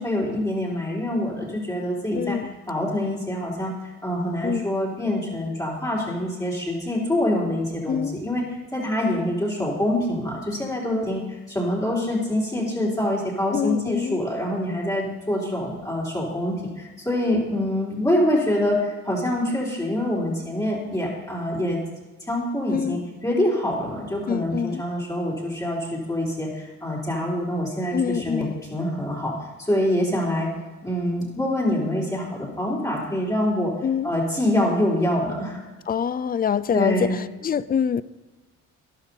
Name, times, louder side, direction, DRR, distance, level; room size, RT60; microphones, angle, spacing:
voice 1, 0.0-2.4 2.7-3.7 4.0-8.4 8.7-11.2 11.5-21.8 22.3-29.3 29.7-30.5 30.8-33.7 34.0-35.6 36.7-37.2, left 1 dB, 10° left, -6 dB, 3.5 m, -25 dB
voice 2, 2.1-2.5 4.4-4.7 7.9-8.2 13.5-14.2 22.7-23.1 24.3-24.8 27.9-28.6 33.8-34.1 35.9-38.0, left 7 dB, 30° left, 18 dB, 0.4 m, -25 dB
12.5 x 11.5 x 4.1 m, 1.2 s
cardioid pair, 90°, 30 cm